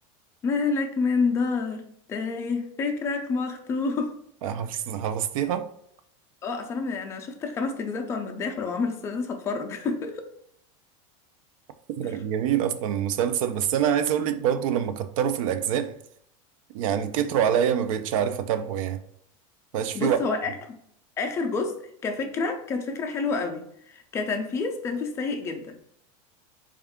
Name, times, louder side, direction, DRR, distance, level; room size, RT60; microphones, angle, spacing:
voice 1, 0.4-4.1 6.4-10.2 12.0-12.1 19.9-20.7 21.2-21.8 22.0-25.8, left 4 dB, 15° left, 0.3 m, -28 dB
voice 2, 4.4-5.7 12.0-15.9 16.7-19.0 19.7-20.2, right 9 dB, 75° right, 0.5 m, -25 dB
3.5 x 2.3 x 3.5 m
supercardioid pair, 170°, 17 cm